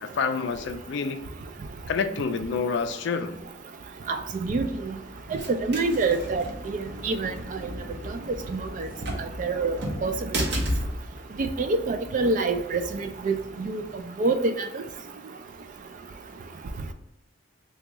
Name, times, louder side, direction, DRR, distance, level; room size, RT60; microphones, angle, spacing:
voice 1, 0.0-1.2 1.9-3.4, left 5 dB, 65° left, 8 dB, 0.3 m, -28 dB
voice 2, 4.1-4.9 5.6-6.4 7.0-7.3 8.5-8.9 9.4-10.1 11.6-13.8 14.2-14.5, right 3 dB, 45° right, 8 dB, 0.3 m, -26 dB
sound 1, 4.4-14.0, equal, 60° right, 0.8 m, -35 dB
3.5 x 2.3 x 2.9 m, 0.87 s
head